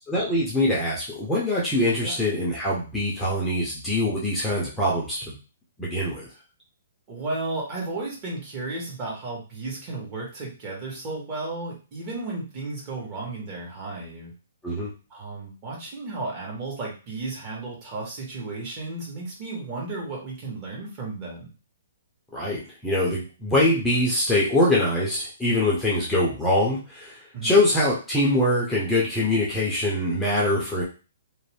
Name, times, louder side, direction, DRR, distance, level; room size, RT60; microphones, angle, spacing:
voice 1, 0.1-5.3 5.8-6.3 14.6-14.9 22.3-30.8, left 1 dB, 5° left, -6 dB, 0.7 m, -23 dB
voice 2, 7.1-14.3 15.1-21.5 27.3-27.6, right 3 dB, 30° right, -3 dB, 1.2 m, -34 dB
2.6 x 2.1 x 3.3 m, 0.34 s
hypercardioid pair, 150°, 0 cm